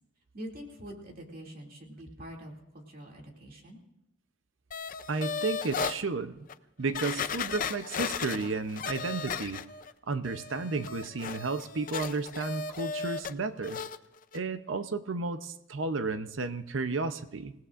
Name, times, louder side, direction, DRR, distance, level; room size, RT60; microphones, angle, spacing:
voice 1, 0.3-3.8, equal, 50° right, 0 dB, 2.6 m, -45 dB
sound 1, 4.7-6.0 6.5-6.6 6.9-9.9 10.2-13.3 13.6-14.0 14.3-14.4, left 5 dB, 45° left, 0.5 m, -35 dB
voice 2, 5.1-6.4 6.8-9.6 10.1-13.8 14.3-17.5, right 3 dB, 75° right, 11 dB, 0.7 m, -33 dB
27.0 x 17.5 x 2.5 m, 0.89 s
head